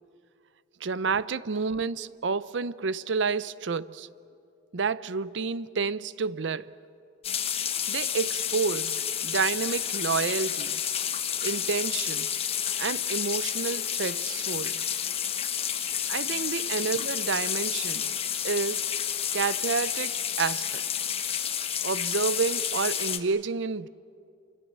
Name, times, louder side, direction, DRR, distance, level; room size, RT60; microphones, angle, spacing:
voice 1, 0.8-4.1 4.7-6.8 7.9-10.9 11.4-12.4 12.8-14.8 16.1-18.1 18.4-19.0 19.3-20.9 21.8-23.9, right 5 dB, 85° right, 0.6 m, -30 dB
sound 1, 7.2-23.2, left 9 dB, 30° left, 1.2 m, -30 dB
28.0 x 25.5 x 7.5 m
head